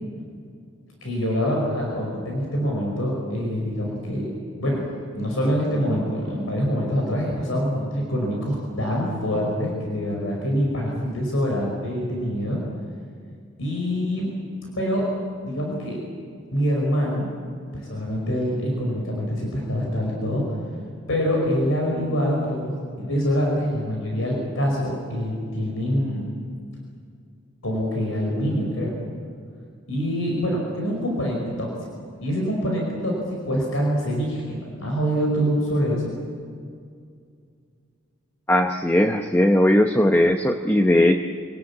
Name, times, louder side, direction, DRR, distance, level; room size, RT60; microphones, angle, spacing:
voice 1, 1.0-4.3 4.6-4.8 5.1-12.6 13.6-14.3 14.8-15.0 15.4-16.0 16.5-17.3 17.7-20.4 21.1-26.3 27.6-28.9 29.9-31.7 32.2-36.1, equal, 85° left, -1 dB, 5.4 m, -25 dB
voice 2, 38.5-41.2, left 1 dB, 10° left, 5 dB, 0.9 m, -18 dB
27.0 x 19.0 x 8.6 m, 2.2 s
head